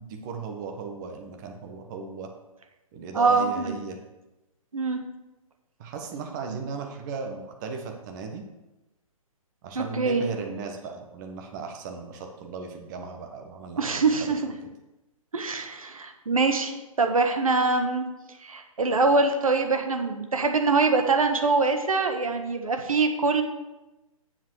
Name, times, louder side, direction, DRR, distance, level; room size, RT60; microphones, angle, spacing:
voice 1, 0.0-2.3 2.9-4.0 5.8-8.4 9.6-14.3, right 5 dB, 30° right, 3 dB, 1.5 m, -36 dB
voice 2, 3.1-3.7 4.7-5.0 9.7-10.2 13.8-14.4 15.3-18.1 18.4-23.4, right 3 dB, 75° right, 5 dB, 1.5 m, -24 dB
9.3 x 7.4 x 4.9 m, 1.0 s
figure-of-eight pair, 130°, 18 cm